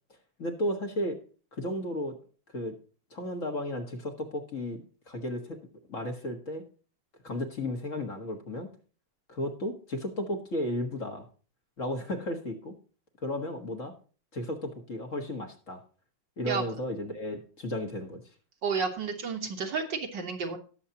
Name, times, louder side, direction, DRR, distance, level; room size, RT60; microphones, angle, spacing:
voice 1, 0.4-1.2 1.5-2.2 2.5-2.8 3.1-5.6 5.9-6.6 7.2-8.7 9.3-11.3 11.8-12.7 13.2-13.9 14.3-15.8 16.4-18.2, left 1 dB, 40° left, 3 dB, 1.9 m, -34 dB
voice 2, 18.6-20.6, right 5 dB, 65° right, 4 dB, 2.0 m, -31 dB
18.5 x 7.1 x 2.9 m, 0.38 s
omnidirectional pair, 2.2 m